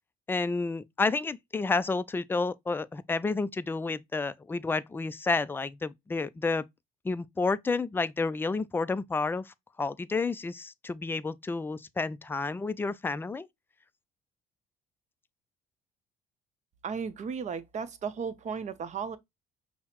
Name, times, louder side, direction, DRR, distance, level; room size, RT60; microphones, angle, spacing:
voice 1, 0.3-6.6 7.0-13.5, left 3 dB, 15° left, 0.3 m, -30 dB
voice 2, 16.8-19.2, right 6 dB, 45° right, 0.7 m, -35 dB
5.5 x 2.1 x 2.9 m
cardioid pair, 110°, 17 cm